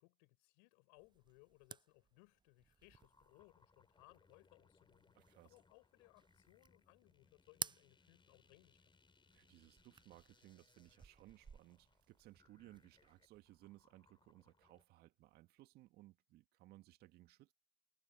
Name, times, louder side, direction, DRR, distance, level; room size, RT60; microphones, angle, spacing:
voice 1, 0.0-5.1 5.4-8.8, left 38 dB, 75° left, 6.1 m, -67 dB
sound 1, 1.0-13.8, right 6 dB, 25° right, 0.6 m, -56 dB
sound 2, 2.9-14.8, left 4 dB, 30° left, 4.4 m, -73 dB
voice 2, 5.2-5.6 9.3-17.5, right 17 dB, 65° right, 2.1 m, -62 dB
hypercardioid pair, 55°, 18 cm